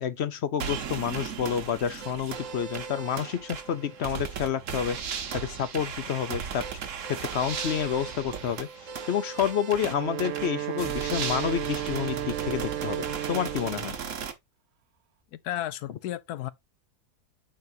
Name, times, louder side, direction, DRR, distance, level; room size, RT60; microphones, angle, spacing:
voice 1, 0.0-6.7 7.1-8.7 9.1-14.0, left 8 dB, 60° left, 0.7 m, -29 dB
sound 1, 0.6-14.3, right 7 dB, 55° right, 1.3 m, -36 dB
Wind instrument woodwind instrument, 9.7-14.0, right 11 dB, 80° right, 0.5 m, -33 dB
voice 2, 15.3-16.5, left 12 dB, 75° left, 1.2 m, -33 dB
9.3 x 4.4 x 2.7 m
omnidirectional pair, 1.7 m